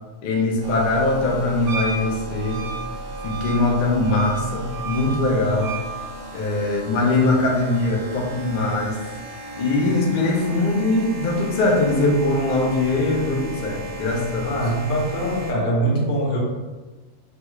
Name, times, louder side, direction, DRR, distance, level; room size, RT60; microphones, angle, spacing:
voice 1, 0.2-2.7 3.2-5.7 6.3-9.0 9.6-14.5, left 2 dB, 60° left, -1 dB, 0.5 m, -21 dB
sound 1, 0.6-15.5, right 1 dB, 50° right, 0.8 m, -36 dB
Wind instrument woodwind instrument, 1.7-5.9, right 4 dB, 80° right, 1.0 m, -33 dB
voice 2, 14.4-16.4, right 1 dB, 75° left, -4 dB, 1.2 m, -23 dB
3.1 x 2.3 x 3.0 m, 1.2 s
omnidirectional pair, 1.5 m